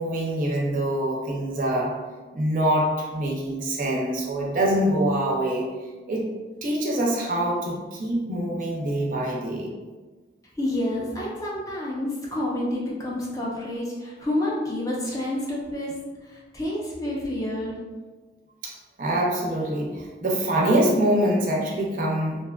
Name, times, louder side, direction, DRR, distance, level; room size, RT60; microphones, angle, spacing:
voice 1, 0.0-1.9 2.3-5.7 6.1-6.3 6.6-9.7 18.6-18.7 19.0-22.4, right 1 dB, 45° right, -2 dB, 0.4 m, -24 dB
voice 2, 10.6-15.9 16.2-17.8, left 1 dB, 20° left, -4 dB, 0.4 m, -29 dB
2.4 x 2.3 x 2.2 m, 1.3 s
head